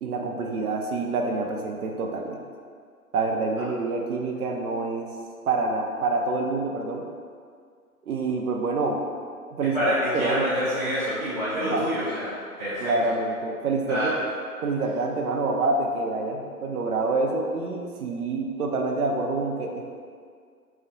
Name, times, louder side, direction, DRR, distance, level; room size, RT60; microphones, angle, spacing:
voice 1, 0.0-2.4 3.1-5.1 5.5-7.0 8.1-9.0 9.5-9.8 10.1-10.4 11.6-11.8 12.8-14.2 14.6-19.8, right 3 dB, 75° right, 1 dB, 0.5 m, -27 dB
voice 2, 9.7-12.9 13.8-14.2, equal, 25° right, -15 dB, 0.8 m, -27 dB
2.9 x 2.0 x 2.5 m, 2.1 s
hypercardioid pair, 175°, 45 cm